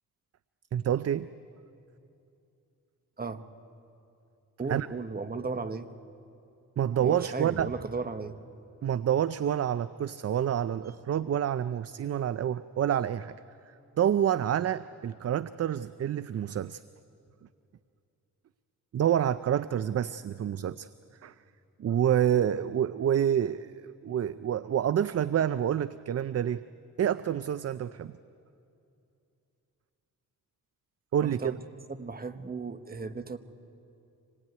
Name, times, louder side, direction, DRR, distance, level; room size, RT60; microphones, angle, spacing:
voice 1, 0.7-1.3 4.7-4.9 6.8-7.8 8.8-13.4 14.0-16.8 18.9-20.9 21.2-21.3 21.8-26.6 27.0-28.1 31.1-31.5, right 10 dB, 50° right, 14 dB, 0.5 m, -28 dB
voice 2, 4.6-5.9 7.0-8.4 31.2-31.5 32.0-33.4, right 4 dB, 30° right, 10 dB, 1.2 m, -35 dB
26.0 x 19.5 x 9.3 m, 2.6 s
cardioid pair, 85°, 32 cm